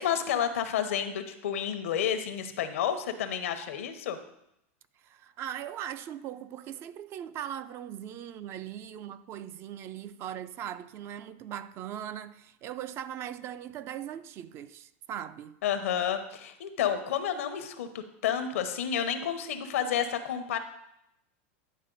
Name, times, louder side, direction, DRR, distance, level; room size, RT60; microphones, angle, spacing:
voice 1, 0.0-4.2 15.6-20.6, left 9 dB, 90° left, 0.8 m, -30 dB
voice 2, 5.0-15.6, right 10 dB, 35° right, 0.4 m, -39 dB
10.5 x 4.2 x 3.9 m
supercardioid pair, 140°, 7 cm